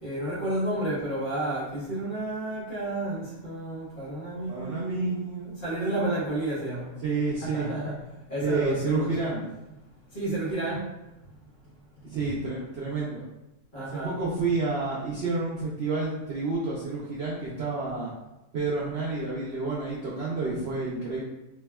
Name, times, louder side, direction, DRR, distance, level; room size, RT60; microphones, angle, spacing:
voice 1, 0.0-6.9 7.4-8.0 8.3-9.3 10.1-10.8 12.2-12.4 13.7-14.2, right 1 dB, 40° left, -8 dB, 1.0 m, -31 dB
voice 2, 4.5-5.1 5.8-6.1 7.0-7.7 8.4-9.4 12.0-13.2 13.7-18.1 18.5-21.2, right 3 dB, 65° right, -6 dB, 0.6 m, -29 dB
3.4 x 2.2 x 2.2 m, 0.99 s
omnidirectional pair, 1.5 m